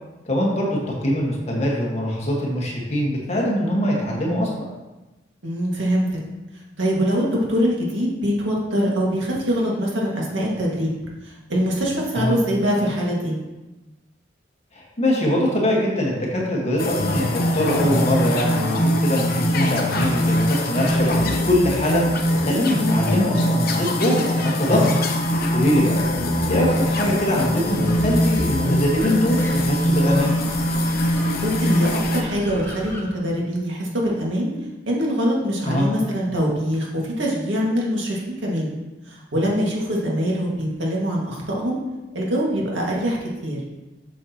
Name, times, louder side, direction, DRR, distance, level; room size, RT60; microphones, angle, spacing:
voice 1, 0.2-4.7 12.1-12.4 14.7-22.0 22.4-24.8 25.5-26.0 26.5-30.3 35.6-35.9, left 1 dB, 35° left, -3 dB, 1.6 m, -22 dB
voice 2, 5.4-6.2 6.8-10.9 11.5-13.3 22.7-23.0 31.4-34.5 34.9-38.7 39.1-41.8 42.1-43.6, equal, 80° right, -3 dB, 2.0 m, -23 dB
sound 1, 16.8-32.2, equal, 55° left, 0.8 m, -22 dB
sound 2, 25.2-33.0, left 1 dB, 15° left, 1.2 m, -37 dB
7.8 x 6.4 x 3.0 m, 1.1 s
head